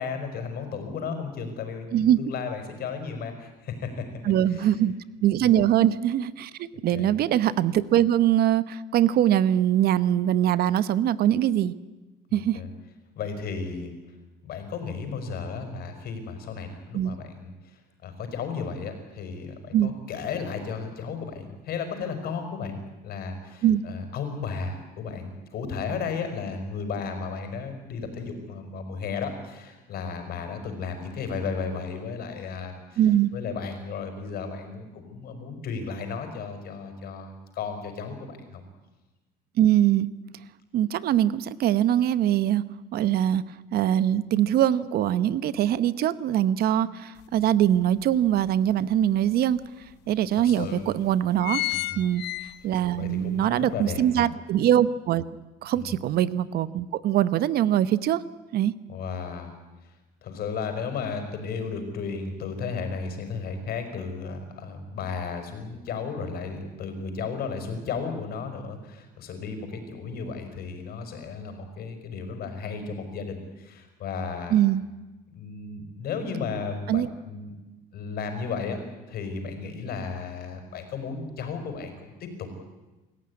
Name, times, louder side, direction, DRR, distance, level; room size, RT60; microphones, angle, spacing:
voice 1, 0.0-4.1 4.5-4.7 5.4-5.6 6.9-7.1 12.3-12.7 13.2-14.0 14.4-22.8 23.0-33.0 33.3-38.6 50.4-50.9 51.7-52.1 52.6-54.3 55.8-56.0 58.9-59.5 59.8-59.9 60.2-74.6 75.3-77.5 77.9-78.8 79.1-82.5, left 5 dB, 60° left, 7 dB, 5.5 m, -34 dB
voice 2, 4.2-4.9 5.2-11.7 12.3-12.6 16.9-17.2 19.7-19.9 23.6-23.8 33.0-33.3 39.6-40.1 40.7-42.7 42.9-43.4 43.7-49.6 50.1-51.6 52.0-52.2 52.6-55.2 55.6-58.2 58.5-58.7 74.5-74.8 76.9-77.1, right 11 dB, 60° right, 16 dB, 0.9 m, -22 dB
sound 1, 47.2-47.3 47.8-48.9 49.6-49.7 49.9-50.0 50.7-50.9 51.2-53.0 53.4-53.5, left 20 dB, 75° left, 0.7 m, -31 dB
26.0 x 15.0 x 9.8 m, 1.1 s
cardioid pair, 105°, 18 cm